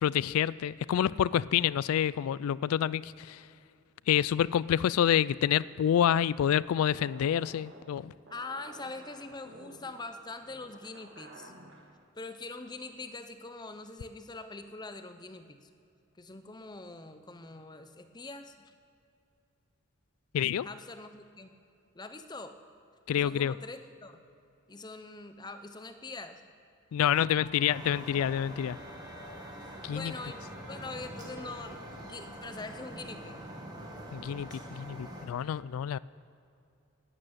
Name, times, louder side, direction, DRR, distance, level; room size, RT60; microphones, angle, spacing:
voice 1, 0.0-3.4 4.1-8.1 20.3-20.7 23.1-23.5 26.9-28.8 29.8-30.1 34.1-36.0, left 9 dB, 85° left, 19 dB, 0.3 m, -28 dB
sound 1, 6.8-11.9, right 1 dB, 55° right, 1.8 m, -52 dB
voice 2, 8.3-11.5 12.2-15.7 16.2-18.7 20.6-21.5 21.9-22.6 23.1-24.2 24.7-26.4 29.9-33.4, left 3 dB, 20° left, 8 dB, 0.7 m, -43 dB
sound 2, 27.1-34.7, left 2 dB, 50° left, 2.5 m, -54 dB
sound 3, 27.7-35.3, right 1 dB, 20° right, 1.7 m, -45 dB
12.0 x 9.1 x 9.1 m, 2.6 s
head